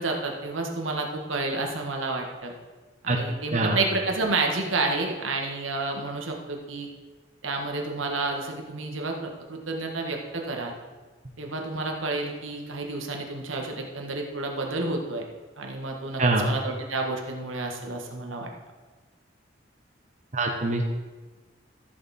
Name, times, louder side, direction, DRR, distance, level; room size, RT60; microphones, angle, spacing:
voice 1, 0.0-2.5 3.0-6.9 7.4-10.7 11.4-15.2 15.6-18.5, right 3 dB, 85° right, 2 dB, 1.6 m, -30 dB
voice 2, 16.2-16.5 20.3-20.8, right 2 dB, 40° right, 1 dB, 1.1 m, -23 dB
14.5 x 7.0 x 4.3 m, 1.3 s
head